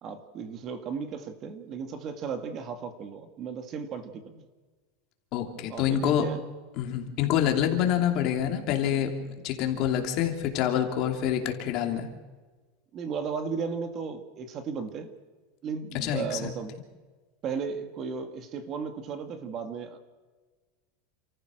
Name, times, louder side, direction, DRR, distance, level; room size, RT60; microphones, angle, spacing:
voice 1, 0.0-4.5 5.7-6.4 12.9-15.1 15.6-16.7 17.4-20.0, right 6 dB, 35° right, 8 dB, 1.8 m, -35 dB
voice 2, 5.3-6.3 6.7-12.1 15.9-16.5, left 10 dB, 45° left, 4 dB, 2.9 m, -27 dB
29.0 x 14.5 x 6.4 m, 1.3 s
supercardioid pair, 150°, 0 cm